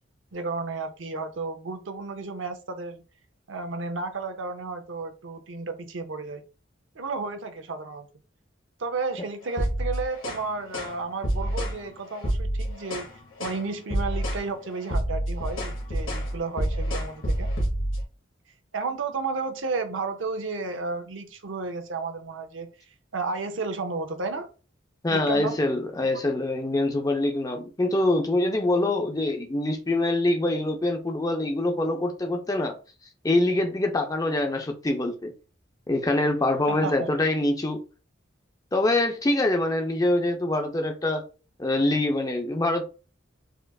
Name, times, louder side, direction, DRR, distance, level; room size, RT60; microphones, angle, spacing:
voice 1, 0.3-3.0 3.5-6.4 6.9-8.1 8.8-13.0 13.4-17.5 18.7-22.7 23.1-24.5 25.1-25.6 26.0-26.3 36.7-37.1, right 4 dB, 70° right, 0.6 m, -32 dB
sound 1, 9.5-10.4 10.7-11.0 11.2-11.8 12.2-13.1 13.4-13.6 13.9-14.4 14.7-18.0, right 1 dB, 85° left, 1.2 m, -28 dB
voice 2, 25.0-32.8 33.2-35.3 35.9-37.8 38.7-41.2 41.6-42.8, left 2 dB, 20° left, 0.5 m, -24 dB
4.3 x 2.4 x 2.3 m
head